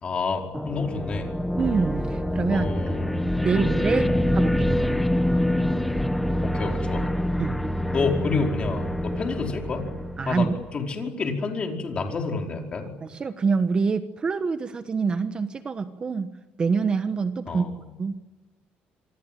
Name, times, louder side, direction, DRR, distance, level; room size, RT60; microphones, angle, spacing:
voice 1, 0.0-1.3 2.5-3.1 3.5-3.7 4.0-4.2 6.4-7.1 7.9-9.8 10.2-12.9 17.5-17.7, left 4 dB, 30° left, 3 dB, 5.0 m, -29 dB
sound 1, 0.5-10.7, left 1 dB, 5° left, 1.2 m, -26 dB
voice 2, 1.6-2.7 3.4-4.1 4.3-4.7 7.4-7.6 10.2-10.5 13.0-17.6 18.0-18.2, right 5 dB, 25° right, 10 dB, 1.2 m, -26 dB
27.0 x 24.0 x 9.2 m, 1.2 s
cardioid pair, 150°, 4 cm